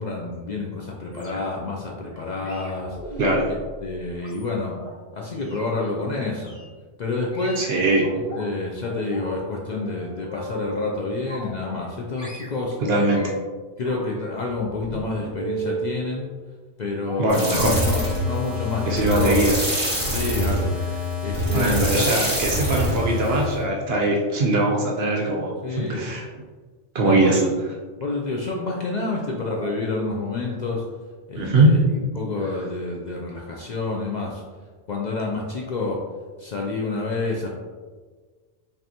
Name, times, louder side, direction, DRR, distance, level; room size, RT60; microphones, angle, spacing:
voice 1, 0.0-3.2 3.8-4.8 5.1-6.5 7.0-7.6 8.3-12.8 13.8-16.3 16.8-19.4 20.1-20.8 21.2-22.1 25.6-26.1 27.0-27.5 28.0-30.8 31.3-34.4 34.9-36.0 36.4-37.6, left 3 dB, 70° left, -1 dB, 0.4 m, -28 dB
sound 1, 1.1-1.7 2.4-4.9 5.4-5.7 6.4-6.7 7.3-8.4 8.8-9.4 9.7-10.9 11.3-11.9 12.2-13.5 13.8-15.9 17.1-17.5 18.2-18.4 18.6-18.9 19.2-19.4 19.7-19.8, right 2 dB, 40° left, 1.2 m, -37 dB
voice 2, 3.2-3.5 7.6-8.0 12.8-13.3 17.2-17.8 18.9-19.5 21.5-26.3 26.9-27.4 31.3-31.7, right 2 dB, 60° right, -1 dB, 0.8 m, -21 dB
sound 2, 17.3-23.6, equal, 15° right, 1.5 m, -25 dB
5.2 x 2.7 x 2.8 m, 1.4 s
omnidirectional pair, 1.3 m